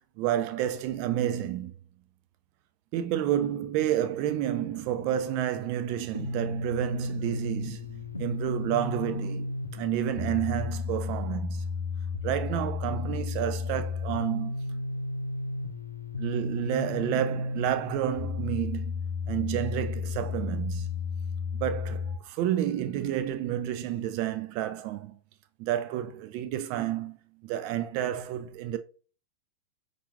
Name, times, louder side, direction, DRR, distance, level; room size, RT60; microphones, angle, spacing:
voice 1, 0.2-1.8 2.9-11.7 12.2-14.8 16.2-19.0 19.3-20.9 21.5-25.2 25.6-27.2 27.4-28.8, right 11 dB, 45° right, 0.5 m, -30 dB
sound 1, 6.1-22.2, left 4 dB, 80° left, 0.5 m, -33 dB
5.6 x 2.5 x 2.2 m
figure-of-eight pair, 90°, 0 cm